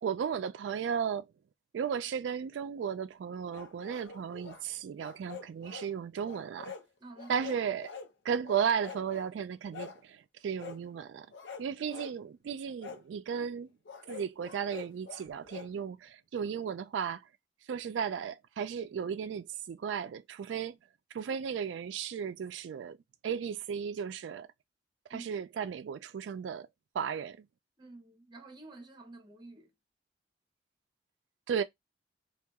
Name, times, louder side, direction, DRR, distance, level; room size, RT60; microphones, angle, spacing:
voice 1, 0.0-1.3 1.7-6.7 7.3-7.9 8.2-11.3 11.6-13.7 14.1-17.3 17.6-20.8 21.1-23.0 23.2-24.5 25.1-26.7 26.9-27.5 31.5-31.6, right 7 dB, 90° right, 0.3 m, -35 dB
sound 1, 3.5-4.6 5.0-5.9 6.2-6.9 7.2-8.1 8.4-9.3 9.7-10.0 10.6-10.8 11.3-12.2 12.8-13.0 13.9-15.7, left 5 dB, 80° left, 0.6 m, -45 dB
voice 2, 7.0-7.5 25.1-25.3 27.8-29.7, right 2 dB, 25° right, 0.9 m, -49 dB
2.7 x 2.3 x 3.4 m
head